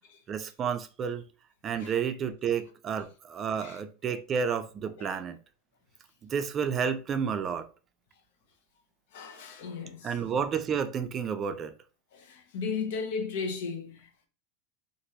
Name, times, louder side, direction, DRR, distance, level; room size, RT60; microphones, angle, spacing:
voice 1, 0.3-1.2 1.6-5.4 6.2-7.7 10.0-11.7, right 7 dB, 35° right, 0.4 m, -31 dB
voice 2, 9.1-10.1 12.1-14.3, left 5 dB, 75° left, 0.7 m, -36 dB
3.0 x 2.5 x 2.8 m
hypercardioid pair, 105°, 0 cm